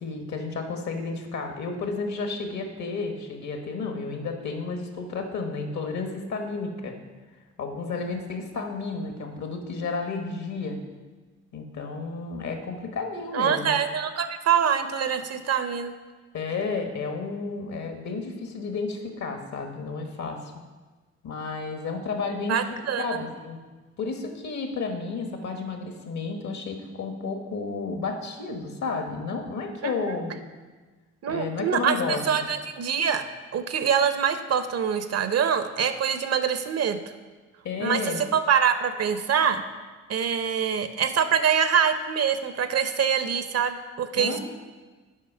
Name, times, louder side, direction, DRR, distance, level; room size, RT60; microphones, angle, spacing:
voice 1, 0.0-6.9 7.6-10.8 11.5-13.8 16.3-20.4 21.2-23.6 24.0-30.3 31.3-32.2 37.6-38.2 44.1-44.4, left 4 dB, 65° left, 4 dB, 1.3 m, -32 dB
voice 2, 13.3-15.9 22.5-23.2 29.8-30.1 31.2-33.2 33.5-37.0 37.8-39.6 40.1-44.4, right 7 dB, 55° right, 10 dB, 0.7 m, -25 dB
7.5 x 5.0 x 5.5 m, 1.3 s
supercardioid pair, 60°, 31 cm